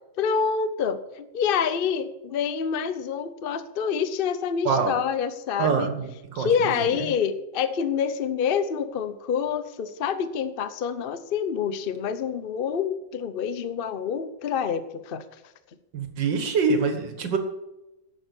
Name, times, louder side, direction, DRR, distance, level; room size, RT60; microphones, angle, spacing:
voice 1, 0.2-5.9 6.3-15.2, left 7 dB, 65° left, 12 dB, 0.5 m, -27 dB
voice 2, 5.6-6.8 15.9-17.4, right 5 dB, 65° right, 7 dB, 2.2 m, -25 dB
11.0 x 7.7 x 8.3 m, 0.95 s
omnidirectional pair, 2.2 m